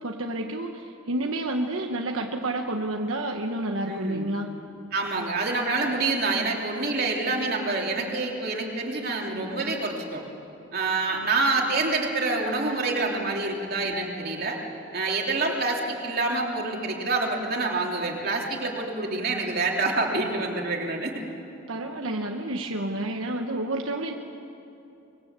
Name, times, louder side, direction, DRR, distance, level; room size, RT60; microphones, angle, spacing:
voice 1, 0.0-4.5 21.7-24.1, right 1 dB, 75° right, 2 dB, 1.3 m, -30 dB
voice 2, 3.9-4.3 4.9-10.2 10.7-14.6 14.9-21.2 22.8-23.0, right 3 dB, 45° right, -1 dB, 3.3 m, -27 dB
24.5 x 21.5 x 8.2 m, 2.8 s
head